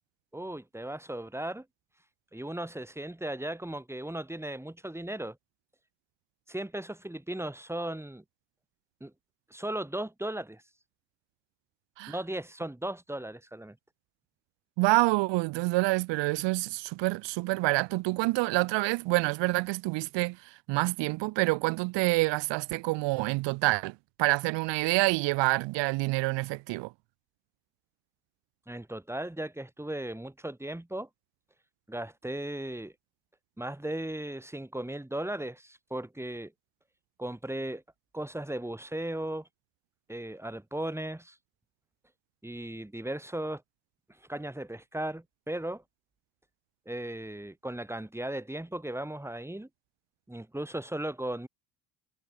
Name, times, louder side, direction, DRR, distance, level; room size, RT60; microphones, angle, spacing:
voice 1, 0.3-1.7 2.3-5.4 6.5-8.2 9.0-9.1 9.5-10.6 12.1-13.8 28.7-31.1 31.9-32.9 33.6-36.5 37.2-37.8 38.1-39.5 40.1-41.4 42.4-43.6 44.3-45.8 46.9-49.7 50.3-51.5, right 1 dB, 5° right, 5.6 m, -36 dB
voice 2, 14.8-26.9, right 23 dB, 80° right, 1.6 m, -27 dB
supercardioid pair, 90°, 43 cm